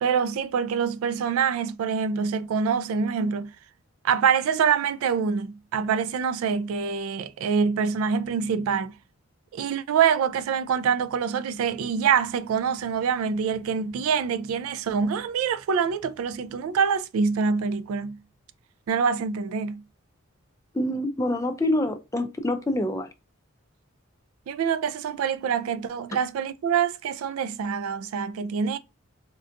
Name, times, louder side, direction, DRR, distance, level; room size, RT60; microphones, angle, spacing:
voice 1, 0.0-3.5 4.0-8.9 9.5-18.2 18.9-19.8 24.5-28.8, right 6 dB, 85° right, 0.3 m, -25 dB
voice 2, 20.7-23.1, left 1 dB, 15° left, 0.4 m, -26 dB
3.6 x 2.3 x 2.6 m
head